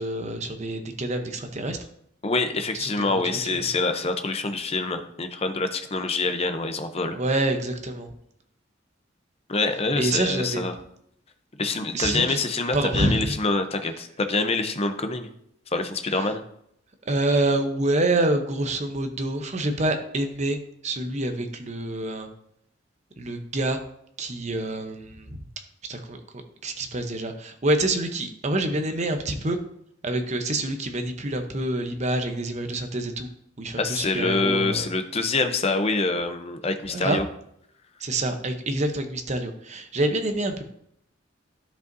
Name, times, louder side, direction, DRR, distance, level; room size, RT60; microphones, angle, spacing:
voice 1, 0.0-1.8 2.7-3.2 3.5-3.6 7.1-8.1 10.0-10.7 11.9-12.4 12.7-13.4 16.1-16.3 17.0-20.6 20.8-22.3 23.2-23.8 24.2-25.4 25.9-26.2 26.6-29.6 30.0-33.3 33.6-34.9 36.9-37.2 38.0-40.6, right 2 dB, 35° right, 6 dB, 0.8 m, -27 dB
voice 2, 2.2-7.2 9.5-10.8 11.6-15.3 15.7-16.4 33.8-37.2, left 3 dB, 30° left, 8 dB, 0.7 m, -26 dB
12.0 x 5.2 x 2.7 m, 0.74 s
head